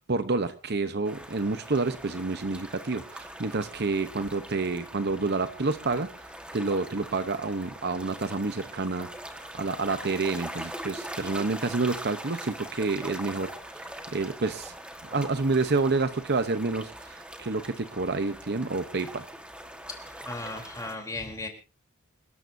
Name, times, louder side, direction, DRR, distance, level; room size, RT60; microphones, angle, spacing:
voice 1, 0.0-6.3 6.5-14.7 15.0-19.2, right 3 dB, 50° right, 11 dB, 0.8 m, -29 dB
sound 1, 1.1-21.0, right 1 dB, 5° right, 1.4 m, -42 dB
voice 2, 19.9-21.5, left 2 dB, 15° left, 2 dB, 3.4 m, -37 dB
28.0 x 12.5 x 2.7 m, 0.32 s
head